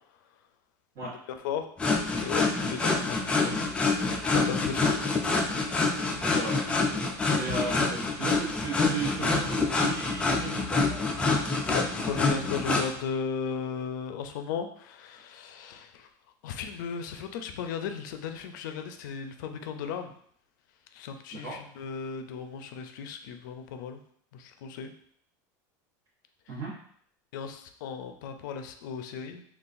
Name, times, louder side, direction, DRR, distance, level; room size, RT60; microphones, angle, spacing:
sound 1, 1.8-12.9, left 3 dB, 10° left, 0.3 m, -26 dB
voice 1, 2.2-3.6 4.3-4.9 7.2-8.0 11.7-16.1 16.4-20.1 20.9-24.0 24.3-24.9 27.3-29.4, left 6 dB, 80° left, 7 dB, 0.4 m, -36 dB
voice 2, 6.2-6.6 7.3-10.8 21.3-21.6 26.5-26.7, right 3 dB, 50° right, -9 dB, 1.2 m, -35 dB
3.8 x 2.4 x 2.5 m, 0.63 s
supercardioid pair, 150°, 10 cm